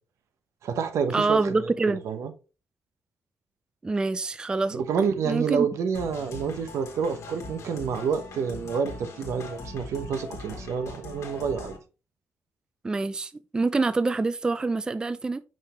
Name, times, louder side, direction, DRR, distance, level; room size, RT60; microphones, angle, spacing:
voice 1, 0.6-2.3 4.7-11.7, right 6 dB, 80° right, 0.9 m, -28 dB
voice 2, 1.1-2.0 3.8-4.8 5.2-5.7 12.8-15.4, right 3 dB, 15° right, 0.3 m, -26 dB
sound 1, 5.9-11.8, left 3 dB, 70° left, 1.6 m, -41 dB
5.5 x 5.2 x 3.3 m
wide cardioid pair, 150°, 5 cm